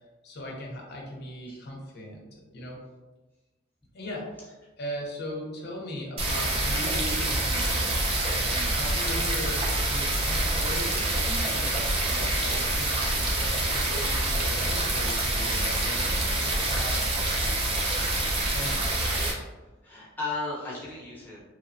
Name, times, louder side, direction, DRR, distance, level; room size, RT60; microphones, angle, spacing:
voice 1, 0.2-2.8 3.9-4.3 4.8-8.0 8.3-17.1 18.5-19.0, left 1 dB, 55° left, -1 dB, 0.6 m, -39 dB
sound 1, 6.2-19.3, right 2 dB, 30° right, 0.5 m, -26 dB
voice 2, 19.6-21.4, left 3 dB, 10° left, -7 dB, 0.7 m, -36 dB
3.0 x 2.0 x 2.5 m, 1.2 s
head